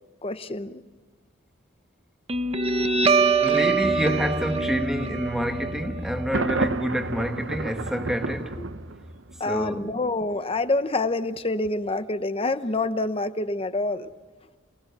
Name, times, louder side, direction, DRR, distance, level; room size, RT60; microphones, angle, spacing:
voice 1, 0.2-0.8 8.6-8.7 9.4-14.1, left 2 dB, 30° left, 0.9 m, -27 dB
Guitar, 2.3-9.3, right 4 dB, 30° right, 1.0 m, -25 dB
voice 2, 3.4-8.6 9.4-10.0, equal, ahead, 1.4 m, -28 dB
Thunder, 6.3-9.3, right 3 dB, 75° right, 0.9 m, -31 dB
27.5 x 19.0 x 6.8 m
head